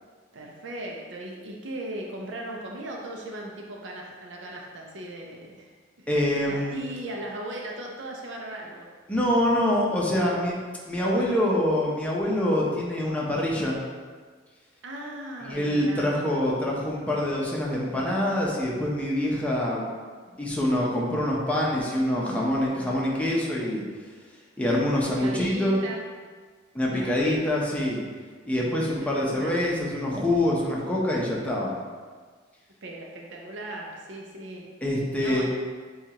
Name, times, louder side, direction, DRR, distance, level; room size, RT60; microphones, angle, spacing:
voice 1, 0.3-8.9 10.2-10.4 14.8-16.3 25.0-26.0 26.9-27.2 29.0-29.5 32.8-34.7 35.2-35.5, right 1 dB, 85° right, -1 dB, 0.6 m, -38 dB
voice 2, 6.1-6.8 9.1-10.5 10.8-13.8 15.4-19.8 20.4-23.8 24.6-25.8 26.7-28.0 28.4-31.7 34.8-35.5, left 1 dB, 10° left, -4 dB, 0.7 m, -25 dB
7.1 x 2.4 x 2.9 m, 1.5 s
head